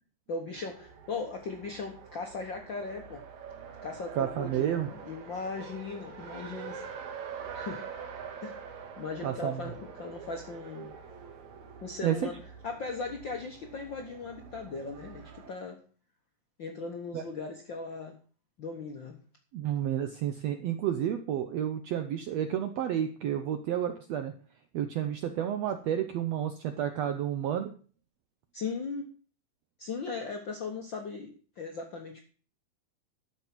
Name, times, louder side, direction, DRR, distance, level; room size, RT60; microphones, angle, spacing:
voice 1, 0.3-3.2 3.8-6.8 7.5-7.8 8.4-8.6 9.0-10.9 11.8-12.4 12.6-15.8 16.6-18.2 18.6-19.2 28.5-29.1 29.8-32.2, left 4 dB, 75° left, 2 dB, 1.0 m, -38 dB
Race car auto racing, 0.5-15.5, right 6 dB, 60° right, 2.6 m, -45 dB
voice 2, 4.1-4.9 9.2-9.6 12.0-12.3 17.1-17.2 19.5-24.3 24.7-27.7, right 10 dB, 90° right, 8 dB, 1.4 m, -30 dB
12.0 x 7.1 x 6.0 m, 0.41 s
omnidirectional pair, 4.0 m